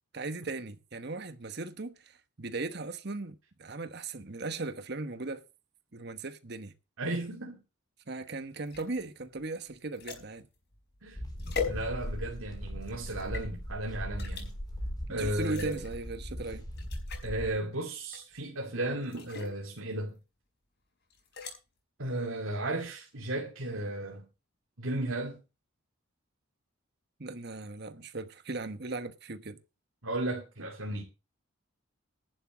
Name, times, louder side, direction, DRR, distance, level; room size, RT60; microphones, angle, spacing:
voice 1, 0.1-5.4 5.9-6.7 8.1-10.5 15.1-16.6 27.2-29.6, right 3 dB, 50° right, 1.1 m, -38 dB
voice 2, 7.0-7.6 11.0-11.2 11.7-14.5 15.1-15.9 17.2-20.2 22.0-24.3 24.8-25.4 30.0-31.0, right 1 dB, 75° right, 2.5 m, -34 dB
sound 1, 8.6-12.4 12.8-13.5 14.2-14.5 15.3-15.9 16.4-16.5 16.7-17.3 18.1-18.5 19.0-19.6 21.1-21.6, left 6 dB, 50° left, 4.8 m, -41 dB
sound 2, 11.1-17.6, equal, 20° left, 4.3 m, -39 dB
11.0 x 7.2 x 7.3 m
head